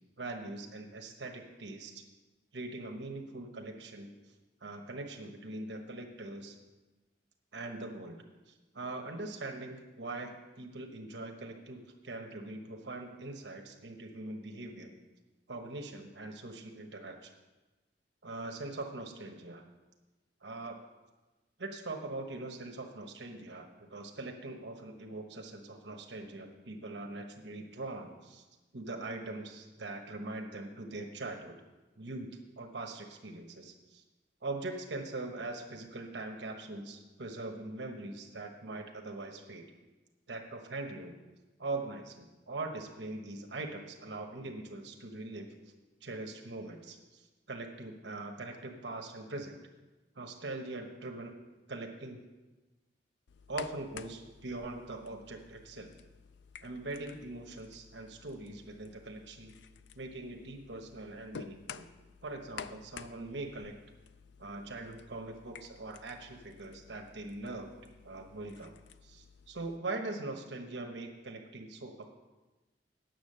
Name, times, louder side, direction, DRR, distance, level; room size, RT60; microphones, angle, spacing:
voice 1, 0.2-2.0 2.5-4.1 4.6-6.6 7.5-8.2 8.5-14.9 15.5-17.3 18.2-19.7 20.4-20.8 21.6-28.4 28.7-31.6 32.0-32.3 32.6-34.0 34.4-39.7 40.3-41.2 41.6-45.5 46.0-49.6 50.2-51.4 51.7-52.2 53.5-55.9 56.6-59.5 59.9-61.9 62.2-63.8 64.4-67.7 68.0-68.7 69.0-72.1, right 2 dB, 75° right, 3 dB, 1.1 m, -42 dB
sound 1, 53.3-69.8, left 7 dB, 70° left, 0.4 m, -52 dB
9.2 x 7.0 x 6.6 m, 1.2 s
head